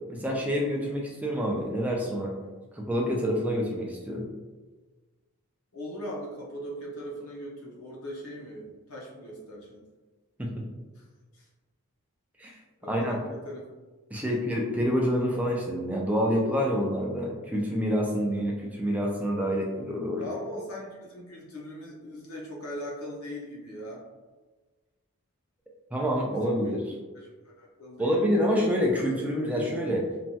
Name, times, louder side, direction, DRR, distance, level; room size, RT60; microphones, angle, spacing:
voice 1, 0.1-2.3 2.7-4.3 10.4-10.5 12.4-12.5 12.9-13.2 14.1-20.3 25.9-26.8 28.0-30.1, equal, 5° right, -1 dB, 0.4 m, -27 dB
voice 2, 5.7-9.8 10.9-11.1 11.3-11.4 12.8-13.7 14.3-14.4 18.3-18.4 20.2-24.0 26.3-26.8 27.1-28.5, equal, 80° left, -3 dB, 0.8 m, -40 dB
3.1 x 2.3 x 2.7 m, 1.3 s
head